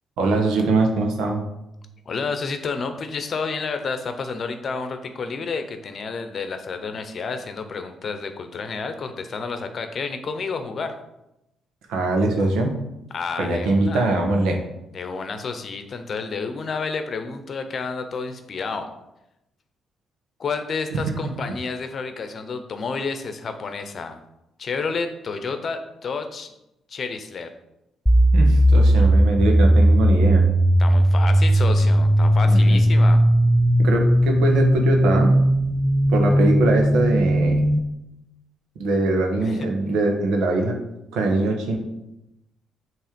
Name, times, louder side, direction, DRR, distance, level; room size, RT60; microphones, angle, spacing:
voice 1, 0.2-1.4 11.9-12.8 13.4-14.6 20.9-21.3 28.3-30.5 32.5-32.8 33.8-35.3 36.1-37.7 38.8-40.8 41.1-41.8, right 2 dB, 85° right, 2 dB, 1.3 m, -22 dB
voice 2, 2.1-10.9 13.1-14.0 14.9-18.9 20.4-24.2 24.6-26.5 26.9-27.5 30.8-33.2 39.4-39.7, left 4 dB, 50° left, 7 dB, 0.8 m, -30 dB
sound 1, 28.1-37.8, equal, ahead, 0.3 m, -17 dB
7.5 x 3.3 x 5.2 m, 0.88 s
cardioid pair, 90°, 0 cm